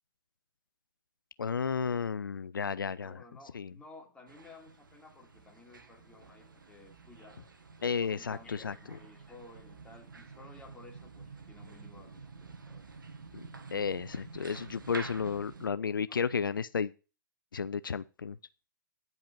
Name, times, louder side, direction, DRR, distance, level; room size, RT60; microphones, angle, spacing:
voice 1, 1.4-3.2 3.5-3.7 7.8-8.7 13.3-13.4 13.7-16.9 17.5-18.4, left 6 dB, 85° left, 0.4 m, -33 dB
voice 2, 2.9-7.4 8.0-12.9 14.7-14.8 15.6-15.7 16.1-16.2, left 2 dB, 10° left, 2.9 m, -55 dB
sound 1, 4.3-15.7, right 4 dB, 80° right, 1.5 m, -49 dB
10.5 x 5.4 x 5.9 m
hypercardioid pair, 115°, 11 cm